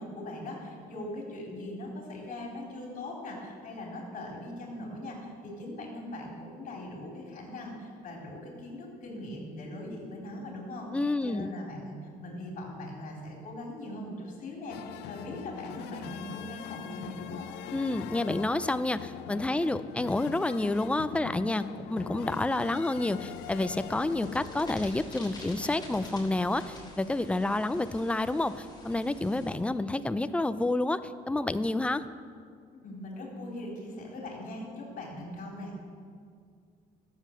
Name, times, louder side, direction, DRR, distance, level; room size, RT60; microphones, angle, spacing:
voice 1, 0.0-17.5 32.8-35.7, left 1 dB, 50° left, -1 dB, 3.8 m, -40 dB
voice 2, 10.9-11.5 17.7-32.1, left 2 dB, 5° left, 13 dB, 0.4 m, -29 dB
sound 1, 14.7-24.7, left 12 dB, 85° left, 0.5 m, -43 dB
sound 2, 23.3-29.5, left 1 dB, 25° left, 3.7 m, -47 dB
13.0 x 7.6 x 6.6 m, 2.2 s
cardioid pair, 110°, 17 cm